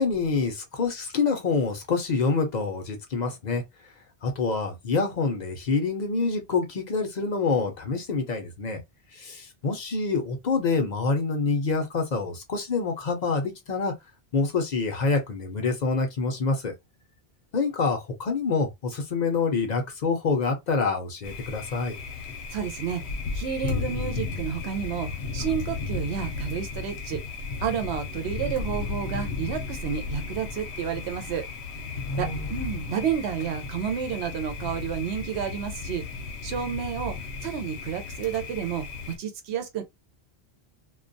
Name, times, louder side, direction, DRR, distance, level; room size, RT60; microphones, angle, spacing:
voice 1, 0.0-3.6 4.2-8.8 9.1-13.9 14.3-16.7 17.5-22.0 32.1-32.5, left 4 dB, 50° left, 0.6 m, -26 dB
Thunder, 21.2-39.2, left 4 dB, 80° left, 0.8 m, -34 dB
voice 2, 22.5-27.2 27.6-31.5 32.2-36.0 36.4-37.2 37.4-39.8, right 8 dB, 80° right, 0.8 m, -31 dB
2.2 x 2.1 x 2.5 m
omnidirectional pair, 1.1 m